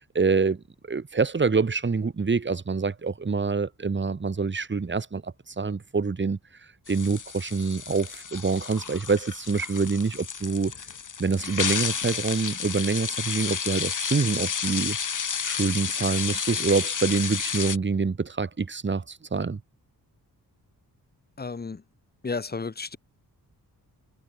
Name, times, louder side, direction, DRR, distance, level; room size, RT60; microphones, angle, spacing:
voice 1, 0.0-6.4 6.9-10.7 11.2-15.0 15.4-19.6, right 4 dB, 30° right, 1.9 m, -26 dB
sound 1, 6.9-17.8, left 6 dB, 50° left, 3.6 m, -31 dB
voice 2, 21.4-21.8 22.2-23.0, left 4 dB, 25° left, 1.2 m, -32 dB
wide cardioid pair, 120°, 38 cm